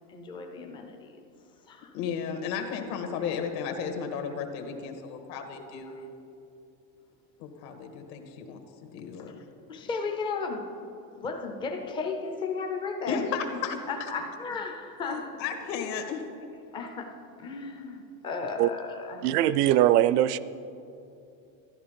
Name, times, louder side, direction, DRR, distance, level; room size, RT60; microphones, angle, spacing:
voice 1, 0.1-1.2 1.6-1.9 5.9-6.0 9.2-9.3 9.7-10.7 11.2-13.6 13.9-15.4 16.7-19.3, left 4 dB, 10° left, 4 dB, 0.4 m, -35 dB
voice 2, 1.9-6.1 7.4-9.4 13.1-14.1 15.4-16.2, left 6 dB, 70° left, 4 dB, 1.7 m, -34 dB
voice 3, 19.2-20.4, right 13 dB, 65° right, 17 dB, 0.6 m, -21 dB
13.0 x 11.0 x 5.1 m, 2.8 s
supercardioid pair, 155°, 50 cm